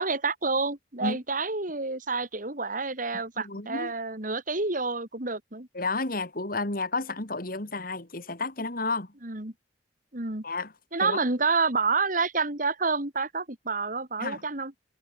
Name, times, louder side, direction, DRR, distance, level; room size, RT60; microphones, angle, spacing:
voice 1, 0.0-5.7 9.2-9.5 10.1-10.4 10.9-14.7, right 4 dB, 45° right, 2.8 m, -28 dB
voice 2, 3.4-3.9 5.7-9.1 10.4-10.7 11.0-11.2 14.2-14.4, left 3 dB, 50° left, 2.9 m, -31 dB
head